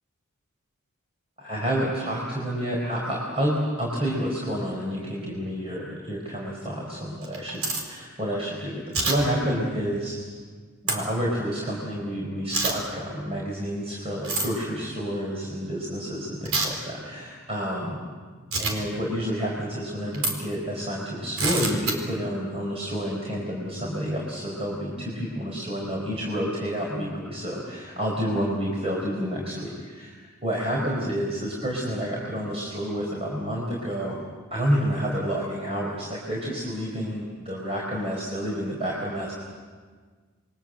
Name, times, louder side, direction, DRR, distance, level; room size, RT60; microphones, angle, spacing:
voice 1, 1.4-7.5 7.8-10.2 10.8-17.9 18.6-34.2 34.5-39.3, equal, 30° right, -3 dB, 4.8 m, -29 dB
sound 1, 7.2-7.8 8.9-9.2 10.9-11.0 12.5-12.7 14.2-14.5 16.5-16.7 18.5-18.7 20.1-20.3 21.4-21.9, right 3 dB, 75° right, 4.5 m, -26 dB
28.5 x 23.0 x 7.8 m, 1.5 s
head